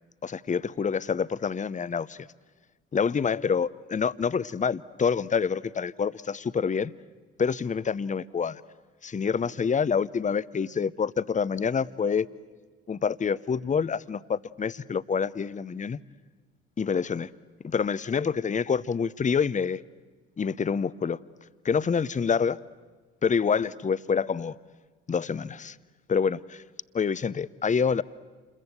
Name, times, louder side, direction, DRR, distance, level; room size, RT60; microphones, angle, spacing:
voice 1, 0.2-2.3 2.9-6.9 7.4-8.6 9.0-12.3 12.9-16.0 16.8-17.3 17.6-19.8 20.4-21.2 21.6-22.6 23.2-24.5 25.1-25.8 26.1-26.6 26.9-28.0, left 6 dB, 25° left, 18 dB, 0.7 m, -27 dB
28.0 x 22.0 x 8.1 m, 1.3 s
hypercardioid pair, 50°, 32 cm